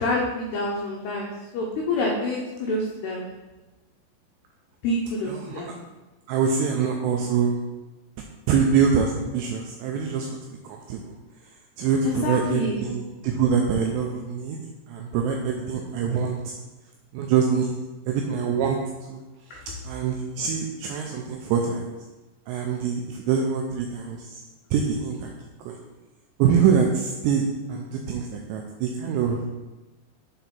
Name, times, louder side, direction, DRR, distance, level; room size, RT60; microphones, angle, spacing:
voice 1, 0.0-3.3 4.8-5.7 12.0-12.8 19.5-19.6, left 1 dB, 85° left, -2 dB, 2.3 m, -27 dB
voice 2, 5.3-5.7 6.3-7.6 8.5-11.2 11.4-14.6 14.9-16.5 17.1-17.8 18.1-18.8 19.1-21.9 22.5-24.4 24.7-25.8 26.4-29.4, right 6 dB, 90° right, 1 dB, 2.5 m, -25 dB
8.2 x 3.9 x 4.3 m, 1.1 s
omnidirectional pair, 5.7 m